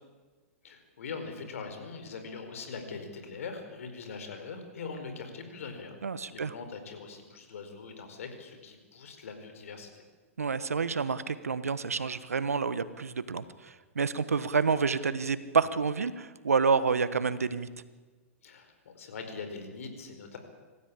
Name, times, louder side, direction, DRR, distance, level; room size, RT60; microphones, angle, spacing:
voice 1, 0.6-6.0 6.3-9.9 18.4-20.4, left 4 dB, 70° left, 6 dB, 4.8 m, -42 dB
voice 2, 6.0-6.5 10.4-17.7, right 5 dB, 90° right, 14 dB, 1.3 m, -29 dB
26.5 x 14.5 x 8.6 m, 1.3 s
hypercardioid pair, 115°, 8 cm